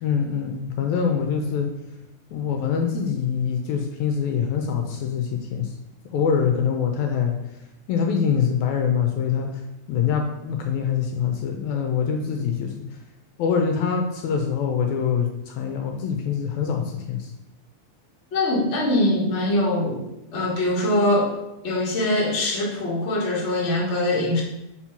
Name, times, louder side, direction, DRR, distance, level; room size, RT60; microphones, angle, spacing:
voice 1, 0.0-1.7 2.3-5.7 6.1-7.3 7.9-9.5 9.9-12.7 13.4-17.3, left 7 dB, 75° left, 3 dB, 1.8 m, -24 dB
voice 2, 18.3-20.0 20.3-21.4 21.6-24.4, left 1 dB, 40° left, -4 dB, 0.9 m, -22 dB
4.4 x 4.4 x 5.7 m, 0.89 s
omnidirectional pair, 3.6 m